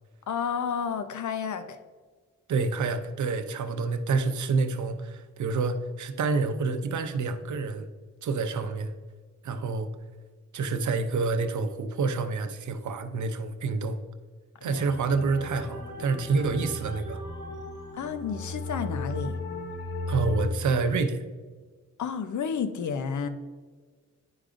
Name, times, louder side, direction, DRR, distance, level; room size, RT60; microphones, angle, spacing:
voice 1, 0.3-1.8 14.6-14.8 17.9-19.3 22.0-23.3, left 6 dB, 75° left, 10 dB, 0.6 m, -31 dB
voice 2, 2.5-7.9 8.2-8.9 9.4-9.9 10.5-14.0 14.6-17.2 20.1-21.2, right 4 dB, 75° right, 9 dB, 0.6 m, -28 dB
sound 1, 14.8-20.5, left 2 dB, 35° left, 1.6 m, -35 dB
10.0 x 4.9 x 2.5 m, 1.5 s
wide cardioid pair, 110°, 30 cm